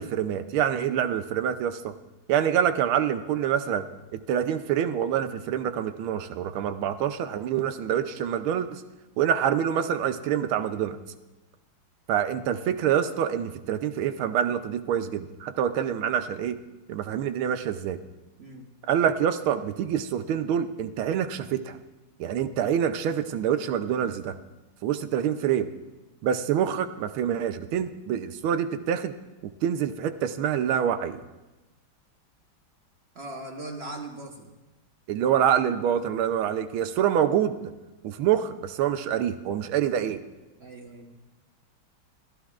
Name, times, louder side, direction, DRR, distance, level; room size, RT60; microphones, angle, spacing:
voice 1, 0.0-1.9 2.3-3.8 4.1-8.8 9.2-11.0 12.1-16.6 16.9-18.0 18.9-21.8 22.2-24.3 24.8-25.7 26.2-29.1 29.6-31.2 35.1-37.7 38.0-40.2, right 9 dB, 85° right, 10 dB, 1.5 m, -26 dB
voice 2, 18.4-18.7 33.1-34.6 40.6-41.1, right 2 dB, 40° right, 2 dB, 1.1 m, -39 dB
23.0 x 13.0 x 2.4 m, 1.1 s
omnidirectional pair, 2.3 m